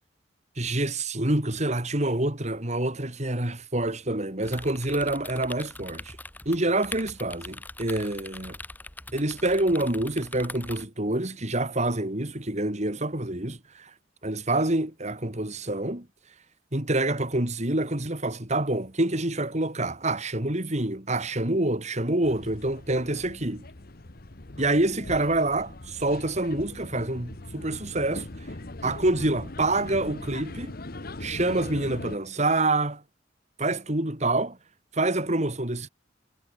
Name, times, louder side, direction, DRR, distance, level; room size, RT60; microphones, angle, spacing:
voice 1, 0.6-6.2 6.4-8.6 9.1-13.9 14.2-16.1 16.7-23.6 24.6-28.3 28.8-30.7 31.2-33.0 33.6-34.6 34.9-35.9, right 2 dB, 40° right, 3.1 m, -27 dB
sound 1, 4.4-10.9, left 2 dB, 10° left, 4.2 m, -42 dB
sound 2, 22.2-32.2, left 2 dB, 55° left, 1.5 m, -40 dB
head